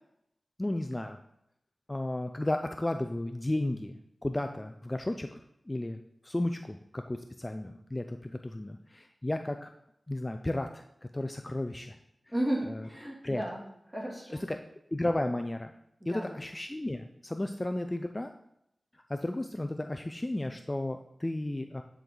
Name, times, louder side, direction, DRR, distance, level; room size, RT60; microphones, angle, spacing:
voice 1, 0.6-1.2 1.9-5.4 5.7-9.7 10.1-12.0 12.7-12.8 13.2-13.4 14.5-14.6 14.9-15.7 16.1-18.3 19.1-21.8, left 1 dB, 20° left, 6 dB, 0.4 m, -33 dB
voice 2, 12.3-14.4 16.0-16.4, right 1 dB, 25° right, -3 dB, 2.5 m, -34 dB
9.4 x 4.6 x 3.9 m, 0.78 s
wide cardioid pair, 80°, 0 cm